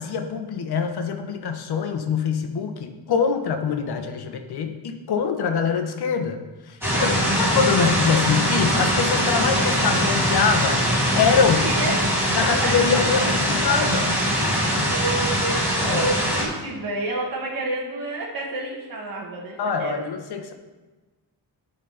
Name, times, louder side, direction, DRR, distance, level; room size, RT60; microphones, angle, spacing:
voice 1, 0.0-7.1 7.4-10.9 11.2-11.7 12.3-14.1 15.8-16.0 19.6-20.5, left 6 dB, 65° left, 6 dB, 1.1 m, -24 dB
sound 1, 6.8-16.4, equal, 5° right, 3.0 m, -22 dB
voice 2, 8.3-8.6 11.6-13.8 14.4-20.0, right 2 dB, 55° right, -3 dB, 1.4 m, -30 dB
12.0 x 4.2 x 5.6 m, 1.2 s
wide cardioid pair, 145°, 41 cm